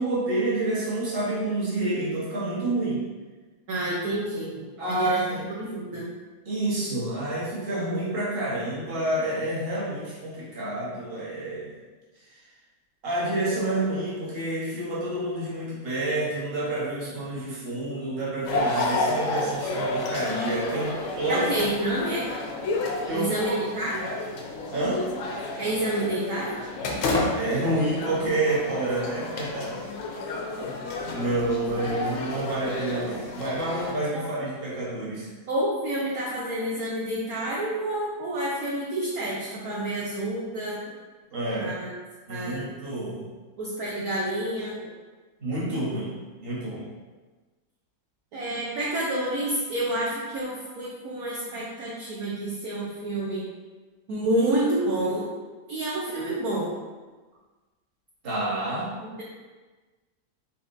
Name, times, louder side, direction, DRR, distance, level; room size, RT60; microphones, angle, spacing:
voice 1, 0.0-3.0 4.8-5.5 6.4-11.7 13.0-21.5 23.1-23.6 24.7-25.1 27.3-29.8 31.1-35.3 41.3-41.8 42.3-43.2 45.4-46.1 46.4-46.9 58.2-58.9, right 2 dB, 35° right, -7 dB, 1.3 m, -28 dB
voice 2, 3.7-4.5 4.8-6.1 21.3-22.3 23.1-24.1 25.6-26.6 34.1-34.2 35.5-40.8 41.6-41.9 42.3-42.6 43.6-44.8 48.3-53.5 54.1-55.3 55.7-56.7, right 1 dB, 60° right, -5 dB, 1.0 m, -28 dB
sound 1, 18.4-33.9, left 2 dB, 70° left, 0.7 m, -31 dB
4.3 x 4.1 x 2.6 m, 1.3 s
omnidirectional pair, 2.0 m